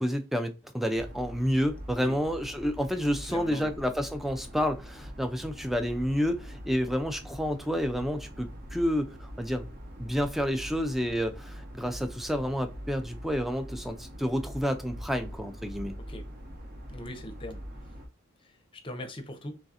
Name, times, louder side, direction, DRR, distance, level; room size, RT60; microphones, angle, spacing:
voice 1, 0.0-9.7 10.0-15.9, equal, ahead, 0.3 m, -29 dB
sound 1, 0.9-18.1, equal, 45° right, 0.7 m, -43 dB
voice 2, 3.3-3.7 16.1-16.2 16.9-17.6 18.8-19.6, left 1 dB, 25° left, 0.7 m, -40 dB
3.6 x 3.1 x 2.7 m
head